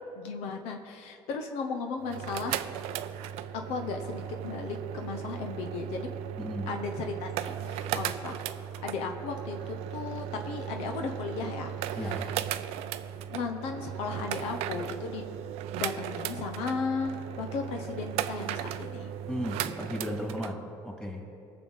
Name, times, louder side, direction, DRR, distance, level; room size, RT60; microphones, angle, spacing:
voice 1, 0.0-2.6 3.5-6.1 6.7-8.4 8.8-12.3 13.3-15.3 15.8-19.1, left 4 dB, 85° left, 4 dB, 0.9 m, -35 dB
sound 1, 2.0-20.5, right 10 dB, 85° right, 0.4 m, -36 dB
voice 2, 6.4-6.7 11.9-12.2 19.3-21.3, equal, 10° left, -1 dB, 2.6 m, -35 dB
19.0 x 6.9 x 4.0 m, 2.6 s
cardioid pair, 90°, 10 cm